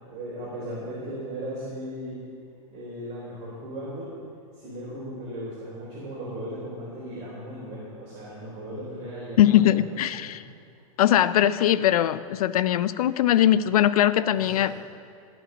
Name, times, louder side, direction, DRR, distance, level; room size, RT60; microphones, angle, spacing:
voice 1, 0.0-2.1 2.7-4.1 4.5-10.3 14.3-14.6, equal, 35° right, -7 dB, 4.0 m, -37 dB
voice 2, 9.4-10.4 11.0-14.8, left 12 dB, 80° left, 14 dB, 0.5 m, -21 dB
14.0 x 6.1 x 8.8 m, 2.3 s
supercardioid pair, 140°, 18 cm